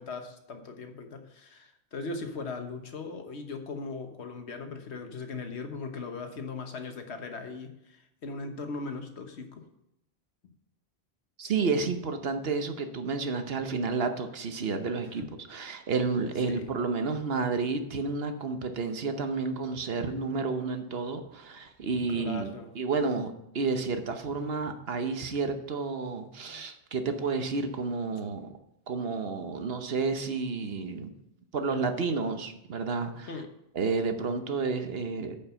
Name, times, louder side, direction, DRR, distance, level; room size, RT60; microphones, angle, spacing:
voice 1, 0.0-9.6 15.2-15.3 16.5-16.7 22.1-22.7 26.5-26.6 28.1-28.2 33.3-33.5, left 3 dB, 85° left, 6 dB, 1.4 m, -39 dB
voice 2, 11.4-15.2 15.5-28.5 28.9-31.1 31.5-33.3 33.7-35.4, right 4 dB, 65° right, 7 dB, 1.1 m, -31 dB
9.3 x 5.4 x 5.7 m, 0.82 s
omnidirectional pair, 1.1 m